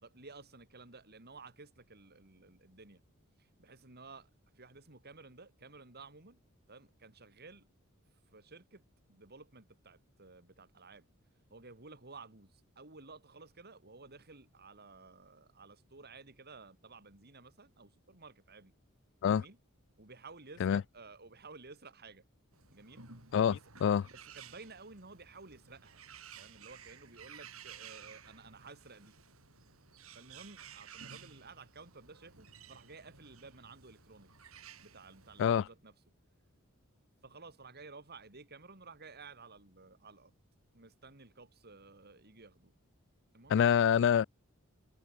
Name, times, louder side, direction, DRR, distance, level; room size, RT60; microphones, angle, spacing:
voice 1, 0.0-3.0 3.6-4.3 4.6-6.4 6.7-7.7 8.3-8.8 9.1-11.1 11.5-18.7 19.2-19.6 20.0-22.2 22.7-23.0 23.5-26.0 26.4-29.2 30.1-34.3 34.8-35.9 37.2-40.3 40.7-42.7 43.3-44.0, right 3 dB, 50° right, 3.7 m, -54 dB
Bird, 22.5-35.5, right 7 dB, 80° right, 8.0 m, -55 dB
voice 2, 23.3-24.1 35.4-35.7 43.5-44.2, left 8 dB, 60° left, 0.3 m, -26 dB
head